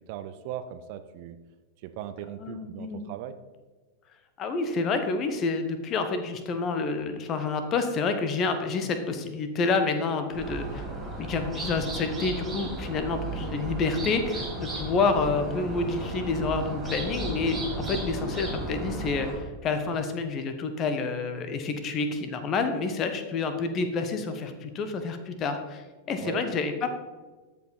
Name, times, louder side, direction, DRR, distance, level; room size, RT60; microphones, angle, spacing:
voice 1, 0.1-1.4 1.8-3.4 17.8-18.0 26.2-26.4, right 10 dB, 45° right, 10 dB, 0.6 m, -38 dB
voice 2, 2.4-3.0 4.4-10.8 11.2-26.9, left 4 dB, 30° left, 8 dB, 1.1 m, -28 dB
sound 1, 10.3-19.4, right 2 dB, 15° right, 3.1 m, -34 dB
13.0 x 5.1 x 4.1 m, 1.3 s
figure-of-eight pair, 90°, 0 cm